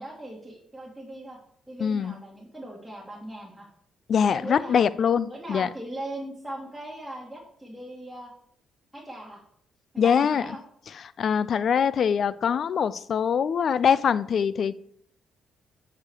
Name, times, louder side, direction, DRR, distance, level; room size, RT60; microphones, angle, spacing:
voice 1, 0.0-1.4 1.7-3.7 4.3-4.9 5.2-8.3 8.9-9.4 9.9-10.6, right 1 dB, ahead, -4 dB, 1.9 m, -39 dB
voice 2, 1.8-2.2 4.1-5.7 10.0-10.5 11.2-14.7, left 7 dB, 55° left, 17 dB, 0.4 m, -23 dB
8.3 x 4.9 x 4.6 m, 0.66 s
cardioid pair, 90°, 0 cm